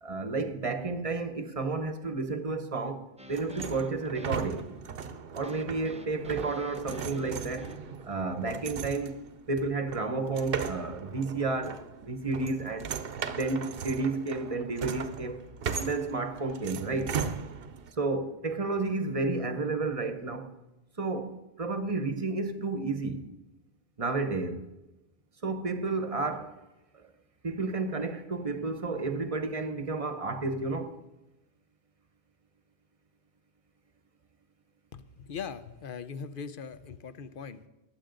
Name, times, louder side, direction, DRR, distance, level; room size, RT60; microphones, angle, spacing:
voice 1, 0.0-4.7 5.3-7.7 8.0-12.9 13.2-15.4 15.8-17.2 18.0-20.5 21.0-23.2 24.0-24.6 25.4-26.5 26.9-27.1 27.4-30.9, right 3 dB, 35° right, 0.9 m, -31 dB
sound 1, 3.2-8.0, right 1 dB, 10° right, 0.6 m, -48 dB
sound 2, 3.3-17.9, right 6 dB, 65° right, 0.9 m, -38 dB
voice 2, 34.9-37.7, left 6 dB, 60° left, 0.9 m, -40 dB
21.0 x 7.8 x 3.9 m
omnidirectional pair, 1.0 m